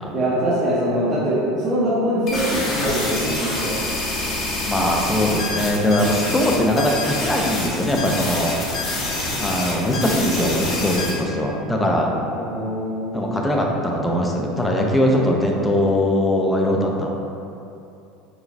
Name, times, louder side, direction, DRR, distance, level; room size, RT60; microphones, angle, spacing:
voice 1, 0.1-3.8 12.3-13.4, equal, 30° right, -11 dB, 0.7 m, -23 dB
sound 1, 2.3-11.1, left 2 dB, 45° left, 0.7 m, -26 dB
voice 2, 4.7-8.5 8.9-9.0 9.4-12.1 13.1-17.1, left 1 dB, 10° left, -1 dB, 0.4 m, -21 dB
3.1 x 2.3 x 2.5 m, 2.7 s
hypercardioid pair, 90°, 0 cm